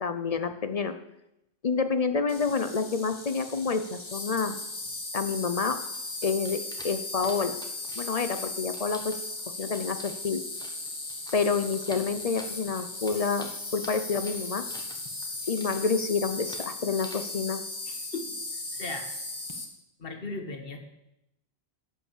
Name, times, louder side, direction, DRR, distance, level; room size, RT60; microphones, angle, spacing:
voice 1, 0.0-0.9 1.6-4.6 5.1-5.8 6.2-7.6 8.0-9.2 9.5-10.4 11.3-14.6 15.5-17.6, left 5 dB, 45° left, 9 dB, 0.6 m, -28 dB
Insect, 2.3-19.6, left 2 dB, 25° left, 1.2 m, -37 dB
sound 1, 5.8-15.0 15.2-16.0 16.3-16.7 16.9-17.3, equal, 5° left, 1.3 m, -49 dB
voice 2, 17.9-18.3 18.7-19.1 20.0-20.8, left 3 dB, 60° left, 5 dB, 1.6 m, -37 dB
11.0 x 5.6 x 7.3 m, 0.86 s
omnidirectional pair, 1.1 m